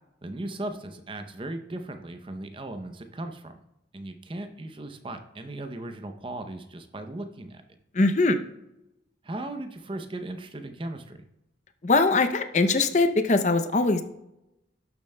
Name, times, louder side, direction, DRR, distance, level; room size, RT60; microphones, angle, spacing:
voice 1, 0.2-3.5 3.9-7.6 9.2-11.2, right 1 dB, 30° right, 7 dB, 0.6 m, -37 dB
voice 2, 7.9-8.4 11.8-14.0, left 3 dB, 40° left, 9 dB, 0.5 m, -21 dB
11.5 x 7.1 x 2.2 m, 0.86 s
head